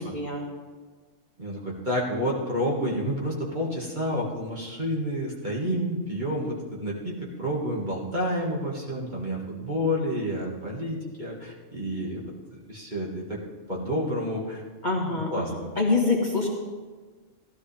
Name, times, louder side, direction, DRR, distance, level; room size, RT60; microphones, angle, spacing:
voice 1, 0.1-0.4 14.8-16.5, left 3 dB, 40° left, -2 dB, 1.7 m, -26 dB
voice 2, 1.4-6.6 6.8-12.2 12.7-13.4 13.7-14.6 15.1-15.7, equal, 40° right, -4 dB, 2.1 m, -29 dB
16.0 x 13.0 x 3.5 m, 1.4 s
omnidirectional pair, 1.3 m